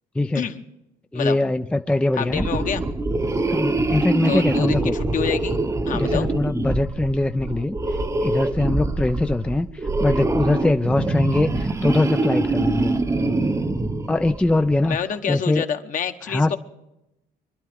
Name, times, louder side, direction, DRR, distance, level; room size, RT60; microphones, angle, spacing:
voice 1, 1.1-2.5 3.5-4.9 5.9-7.8 8.2-9.7 10.0-12.9 14.1-15.0 15.3-15.6 16.3-16.6, left 2 dB, 5° left, 0.4 m, -22 dB
voice 2, 2.1-2.8 4.3-5.6 5.9-6.3 14.8-16.6, left 8 dB, 50° left, 1.1 m, -27 dB
sound 1, 2.3-14.8, right 2 dB, 20° right, 0.8 m, -24 dB
25.0 x 11.5 x 3.6 m
cardioid pair, 110°, 17 cm